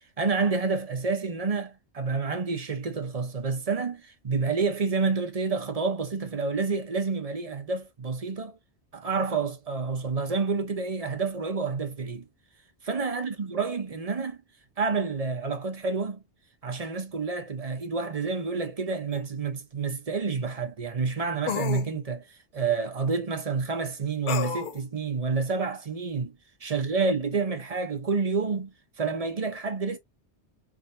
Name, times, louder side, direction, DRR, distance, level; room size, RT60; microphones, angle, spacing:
voice 1, 0.2-8.6 8.9-12.3 12.8-14.4 14.8-16.2 16.6-26.4 26.6-30.0, right 4 dB, 40° right, 0.8 m, -29 dB
sound 1, 19.1-19.2 21.5-21.9 24.3-24.8, left 8 dB, 60° left, 0.6 m, -30 dB
4.8 x 2.7 x 2.6 m
omnidirectional pair, 1.1 m